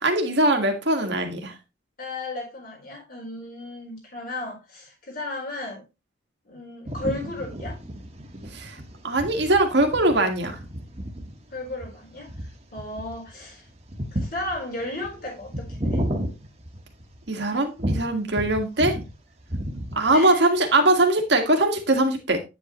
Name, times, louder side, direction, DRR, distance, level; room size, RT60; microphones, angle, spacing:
voice 1, 0.0-1.5 8.5-8.8 9.0-10.6 17.3-19.0 19.9-22.4, right 2 dB, 55° right, 1.8 m, -21 dB
voice 2, 2.0-5.8 6.5-7.8 11.5-12.3 12.7-13.6 14.1-16.0 20.1-20.5, left 2 dB, 45° left, 4.3 m, -34 dB
sound 1, 6.8-17.3 17.8-19.1 19.4-20.3, equal, 30° right, 1.6 m, -32 dB
9.4 x 7.6 x 3.1 m
head